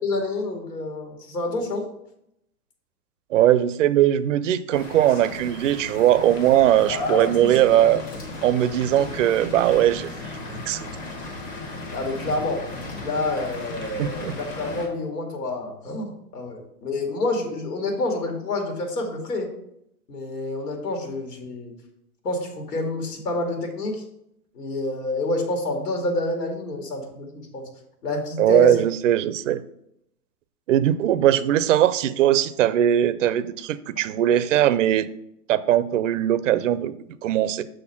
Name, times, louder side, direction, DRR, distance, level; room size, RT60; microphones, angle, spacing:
voice 1, 0.0-1.8 6.9-7.6 9.0-9.1 11.9-12.6 13.0-19.5 20.1-21.7 22.2-24.0 24.5-27.7 28.0-28.8, left 2 dB, 80° left, 3 dB, 2.3 m, -28 dB
voice 2, 3.3-8.0 8.4-10.1 10.5-10.9 14.0-14.3 28.4-29.6 30.7-35.1 35.5-36.9 37.2-37.6, right 11 dB, 55° right, 15 dB, 0.5 m, -20 dB
sound 1, 4.7-14.9, left 2 dB, 20° left, 1.1 m, -36 dB
6.5 x 4.3 x 5.7 m, 0.78 s
hypercardioid pair, 155°, 47 cm